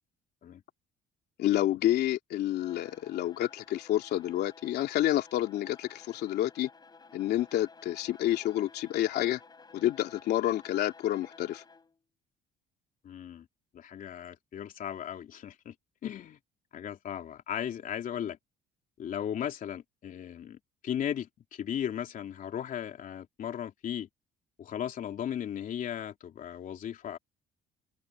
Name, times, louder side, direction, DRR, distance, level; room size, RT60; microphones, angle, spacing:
voice 1, 1.4-6.7 7.1-9.4 9.7-11.6, left 13 dB, 75° left, 3.1 m, -29 dB
Bowed string instrument, 2.5-12.0, left 4 dB, 25° left, 5.5 m, -54 dB
voice 2, 13.0-13.5 13.7-15.7 16.0-16.4 16.7-18.4 19.0-24.1 24.6-27.2, left 9 dB, 55° left, 3.1 m, -36 dB
cardioid pair, 110°, 17 cm